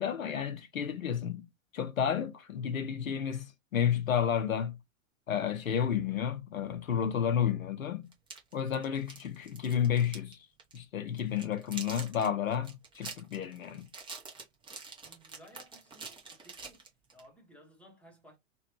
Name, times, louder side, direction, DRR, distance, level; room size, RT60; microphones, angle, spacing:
voice 1, 0.0-1.5 1.7-4.8 5.3-8.1 8.5-10.4 10.7-13.9, left 8 dB, 80° left, 0.8 m, -31 dB
sound 1, 8.1-10.3 10.6-10.8 11.2-17.3, right 4 dB, 10° right, 1.0 m, -46 dB
voice 2, 8.7-9.1 15.0-16.9 17.1-18.4, equal, 5° left, 1.2 m, -57 dB
3.0 x 2.5 x 2.9 m
figure-of-eight pair, 105°, 40 cm